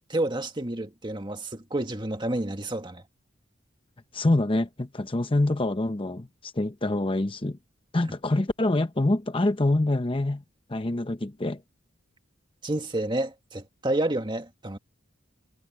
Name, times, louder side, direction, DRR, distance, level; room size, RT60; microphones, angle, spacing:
voice 1, 0.1-3.0 12.6-14.8, right 1 dB, 25° right, 1.8 m, -29 dB
voice 2, 4.1-7.6 7.9-10.4 10.7-11.6, left 2 dB, 25° left, 0.8 m, -25 dB
head